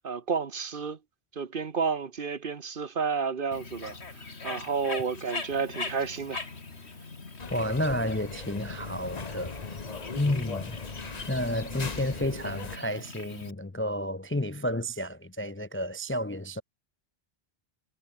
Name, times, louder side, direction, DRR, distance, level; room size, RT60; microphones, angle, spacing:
voice 1, 0.0-1.0 1.3-4.0 4.4-6.5, right 5 dB, 55° right, 1.3 m, -31 dB
Bird, 3.5-13.5, left 3 dB, 85° left, 2.8 m, -42 dB
sound 1, 7.4-12.8, left 4 dB, 40° left, 1.3 m, -39 dB
voice 2, 7.5-9.5 10.2-10.8 11.3-16.6, left 1 dB, 15° left, 0.5 m, -31 dB
omnidirectional pair, 1.1 m